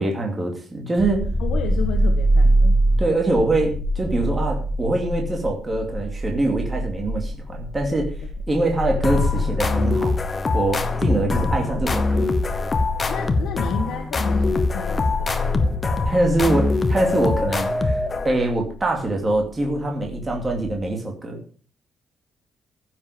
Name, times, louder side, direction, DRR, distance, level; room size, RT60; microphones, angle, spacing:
voice 1, 0.0-1.3 3.0-8.1 8.5-10.1 10.5-12.3 16.0-21.4, right 2 dB, 15° right, 1 dB, 2.4 m, -24 dB
sound 1, 1.0-20.9, equal, 35° right, 3.2 m, -26 dB
voice 2, 1.4-2.8 13.1-15.8, left 7 dB, 85° left, 3 dB, 1.6 m, -32 dB
sound 2, 9.0-18.5, left 3 dB, 20° left, 1.1 m, -23 dB
15.0 x 7.5 x 5.1 m, 0.41 s
cardioid pair, 175°, 0 cm